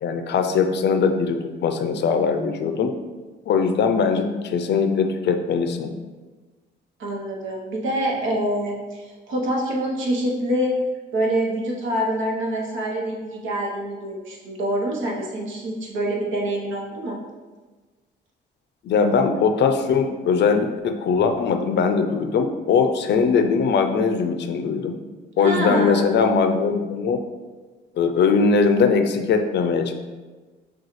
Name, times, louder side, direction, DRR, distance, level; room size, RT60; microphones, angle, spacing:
voice 1, 0.0-2.9 3.5-5.9 18.8-25.0 25.4-27.2 28.0-29.9, left 5 dB, 60° left, 7 dB, 0.5 m, -20 dB
voice 2, 7.0-10.8 11.1-17.2 25.4-26.2, right 1 dB, 75° right, -1 dB, 1.0 m, -26 dB
6.2 x 2.3 x 3.1 m, 1.3 s
cardioid pair, 90°, 20 cm